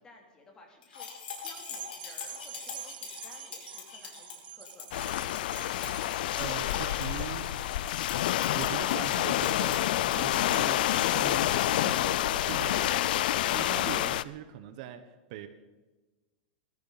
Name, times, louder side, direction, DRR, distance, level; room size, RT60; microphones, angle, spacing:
voice 1, 0.0-5.1, left 2 dB, 15° left, 1 dB, 3.1 m, -55 dB
sound 1, 0.8-10.6, left 6 dB, 90° left, 5.1 m, -44 dB
sound 2, 1.3-9.9 10.4-10.5, right 11 dB, 80° right, 1.0 m, -48 dB
sound 3, 4.9-14.2, left 13 dB, 65° left, 0.5 m, -28 dB
voice 2, 6.4-7.5 8.5-15.5, right 11 dB, 50° right, 10 dB, 1.0 m, -42 dB
19.5 x 14.0 x 4.1 m, 1.2 s
supercardioid pair, 155°, 5 cm